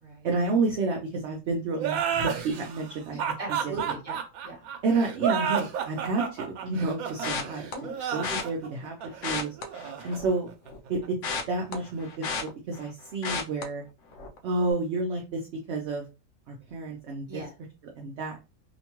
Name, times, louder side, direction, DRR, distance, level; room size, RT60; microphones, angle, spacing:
voice 1, 0.2-3.3 3.6-4.0 4.8-7.7 8.1-9.0 9.2-9.5 10.0-10.5 10.9-11.2 11.5-13.8 14.4-15.4 15.7-16.0 16.5-17.4 18.0-18.4, right 3 dB, 60° right, 1 dB, 0.8 m, -30 dB
sound 1, 1.8-11.1, right 8 dB, 85° right, 1.1 m, -31 dB
voice 2, 3.1-4.7 7.7-8.2 17.3-17.5, right 2 dB, 25° right, 0 dB, 1.2 m, -39 dB
sound 2, 7.2-7.7 8.2-8.4 9.1-10.4 10.7-12.9 13.2-13.6 14.1-14.4 14.7-14.8, left 4 dB, 70° left, 0.9 m, -33 dB
2.9 x 2.2 x 2.9 m, 0.28 s
omnidirectional pair, 1.4 m